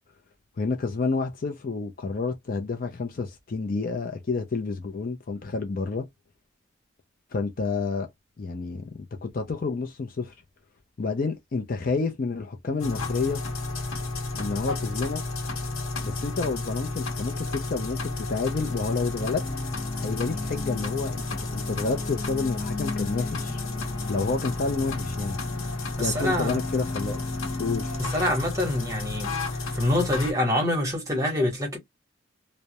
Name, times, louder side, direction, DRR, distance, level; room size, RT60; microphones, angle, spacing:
voice 1, 0.6-6.1 7.3-8.1 8.4-8.8 9.2-10.3 11.0-13.4 14.3-15.2 16.0-19.5 20.0-23.6 24.1-25.4 26.0-27.2 27.6-27.9, left 4 dB, 45° left, 0.4 m, -29 dB
sound 1, 12.8-30.3, left 2 dB, 90° left, 0.8 m, -32 dB
sound 2, 18.9-28.0, left 3 dB, 20° left, 1.0 m, -38 dB
voice 2, 26.0-26.6 28.0-29.3 29.7-31.8, left 1 dB, 15° right, 1.0 m, -25 dB
2.3 x 2.0 x 2.7 m
head